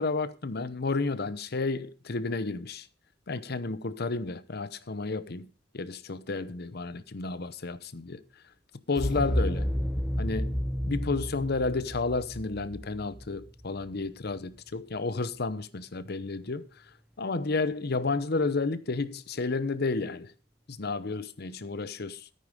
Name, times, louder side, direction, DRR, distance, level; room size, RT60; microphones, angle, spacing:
voice 1, 0.0-2.9 3.3-5.5 5.7-8.2 8.9-9.7 10.2-16.6 17.2-20.3 20.7-22.3, left 3 dB, 60° left, 0.9 m, -31 dB
sound 1, 9.0-13.8, equal, ahead, 0.7 m, -31 dB
13.5 x 9.4 x 5.0 m
head